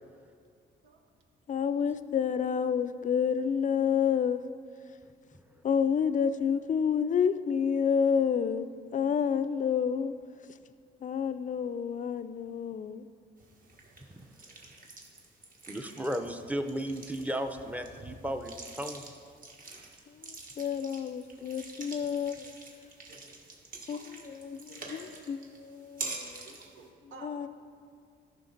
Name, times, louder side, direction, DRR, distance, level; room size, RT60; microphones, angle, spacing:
voice 1, 1.5-4.4 5.6-10.1 11.0-13.1 20.1-22.5 23.9-24.0 24.4-26.5 27.2-27.5, left 7 dB, 40° left, 12 dB, 0.4 m, -29 dB
sound 1, 13.4-26.9, right 3 dB, 45° right, 1.5 m, -47 dB
voice 2, 15.7-19.0, equal, 5° right, 6 dB, 0.6 m, -35 dB
voice 3, 23.1-23.6 23.9-24.0 24.4-25.2 25.8-26.0 26.4-27.4, right 4 dB, 85° right, 4 dB, 1.0 m, -54 dB
13.5 x 5.8 x 4.0 m, 2.2 s
cardioid pair, 90°, 20 cm